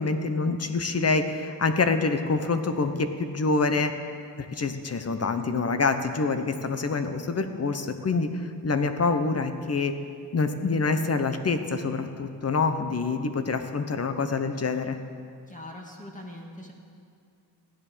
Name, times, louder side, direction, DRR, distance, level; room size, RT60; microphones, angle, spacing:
voice 1, 0.0-3.9 4.4-9.9 10.3-15.0, left 4 dB, 35° left, 8 dB, 1.1 m, -26 dB
voice 2, 15.5-16.7, left 1 dB, 20° left, -1 dB, 1.9 m, -42 dB
15.5 x 10.0 x 6.9 m, 2.4 s
cardioid pair, 100°, 41 cm